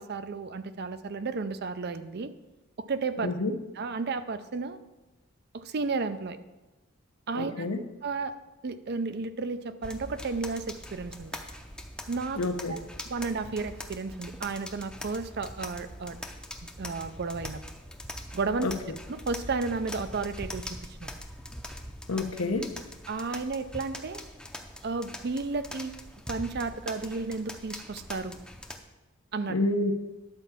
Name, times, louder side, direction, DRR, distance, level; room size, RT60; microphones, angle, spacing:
voice 1, 0.0-2.3 2.8-3.3 3.8-4.8 5.5-6.4 7.3-7.7 8.0-8.3 8.6-11.4 12.1-12.4 12.7-12.8 13.0-16.2 16.6-17.6 18.3-18.7 19.1-20.7 21.0-21.1 23.1-24.2 24.8-25.9 26.3-28.4 29.3-29.6, right 4 dB, 50° right, 12 dB, 0.5 m, -33 dB
voice 2, 3.2-3.5 7.3-7.8 12.4-12.8 18.6-18.7 22.1-22.7 29.5-29.9, left 2 dB, 85° left, 6 dB, 1.0 m, -28 dB
sound 1, 9.8-28.8, left 1 dB, 5° left, 0.6 m, -42 dB
11.5 x 4.6 x 7.1 m, 1.1 s
head